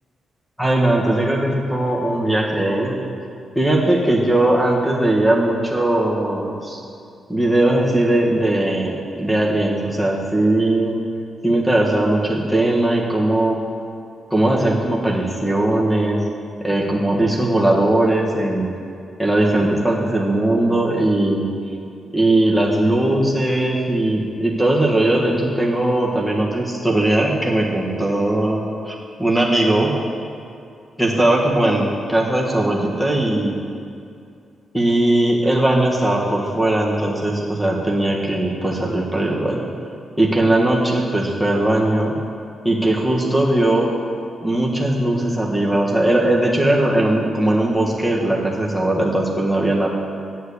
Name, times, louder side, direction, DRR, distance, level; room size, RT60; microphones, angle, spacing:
voice 1, 0.6-3.0 3.5-6.8 7.3-11.0 11.4-13.6 14.3-16.2 16.6-18.7 19.2-21.5 22.1-30.0 31.0-33.6 34.7-39.6 40.2-42.1 42.6-43.9 44.4-49.9, right 1 dB, 5° left, -1 dB, 1.5 m, -19 dB
9.4 x 8.0 x 8.4 m, 2.5 s
wide cardioid pair, 175°, 0 cm